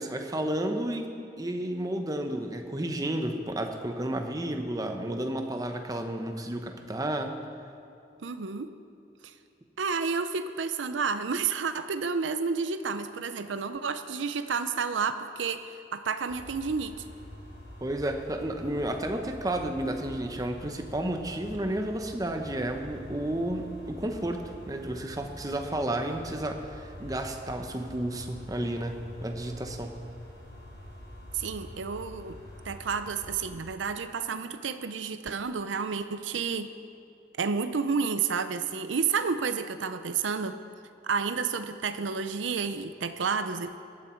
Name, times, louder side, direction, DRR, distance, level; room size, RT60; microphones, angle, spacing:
voice 1, 0.0-7.3 17.8-30.0, right 1 dB, 20° right, 5 dB, 0.9 m, -32 dB
voice 2, 8.2-8.7 9.2-9.3 9.8-17.0 31.3-32.4 32.6-36.7 37.4-40.6 41.0-43.8, right 5 dB, 90° right, 10 dB, 0.6 m, -30 dB
sound 1, 16.3-33.6, equal, 65° left, 3.5 m, -46 dB
17.0 x 12.5 x 4.5 m, 2.6 s
head